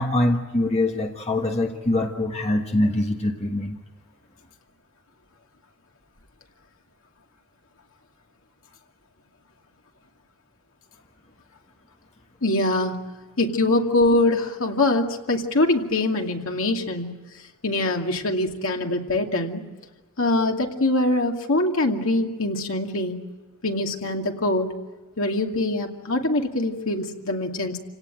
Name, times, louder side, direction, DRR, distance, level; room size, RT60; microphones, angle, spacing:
voice 1, 0.0-3.8, left 1 dB, 30° left, 2 dB, 1.4 m, -23 dB
voice 2, 12.4-13.0 13.4-17.1 17.6-19.6 20.2-23.2 23.6-24.7 25.2-27.8, left 2 dB, 65° left, 2 dB, 2.5 m, -23 dB
28.5 x 18.0 x 9.1 m, 1.2 s
head